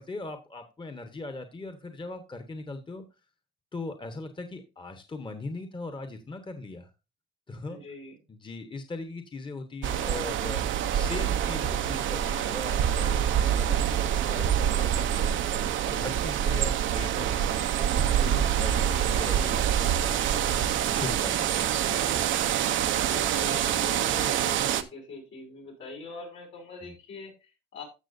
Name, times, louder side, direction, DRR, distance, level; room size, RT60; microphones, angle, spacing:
voice 1, 0.0-3.0 3.7-6.9 7.5-7.8 8.3-15.4 15.8-20.6 20.9-22.1 26.8-26.9, left 3 dB, 25° left, 7 dB, 1.2 m, -40 dB
voice 2, 7.7-8.2 16.3-16.7 23.0-27.8, left 3 dB, 75° left, -1 dB, 6.0 m, -43 dB
sound 1, 9.8-24.8, right 10 dB, 80° right, 0.7 m, -26 dB
15.0 x 6.2 x 2.6 m, 0.28 s
cardioid pair, 90°, 20 cm